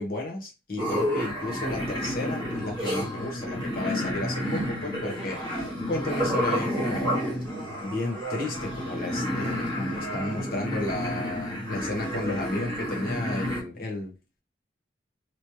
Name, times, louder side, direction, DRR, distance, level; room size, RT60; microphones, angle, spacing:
voice 1, 0.0-5.4 5.9-7.2 7.8-14.1, left 2 dB, 55° left, 0 dB, 1.1 m, -33 dB
sound 1, 0.8-13.6, equal, 25° left, 1.3 m, -30 dB
3.1 x 3.1 x 2.8 m, 0.27 s
head